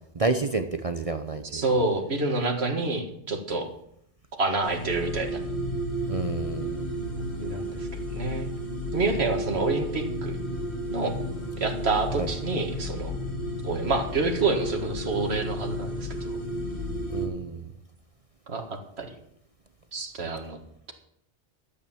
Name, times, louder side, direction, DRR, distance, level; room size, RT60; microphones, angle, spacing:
voice 1, 0.1-1.6 6.1-6.9 12.2-12.3 17.1-17.7, right 3 dB, 35° right, 8 dB, 0.8 m, -29 dB
voice 2, 1.5-3.7 4.3-5.4 7.2-8.5 8.9-10.4 10.9-11.2 11.6-13.2 13.6-16.4 18.5-19.1 19.9-20.6, right 3 dB, 60° right, 4 dB, 2.1 m, -28 dB
sound 1, 4.6-17.3, equal, 35° left, 2.4 m, -32 dB
12.5 x 8.5 x 7.2 m, 0.72 s
omnidirectional pair, 1.2 m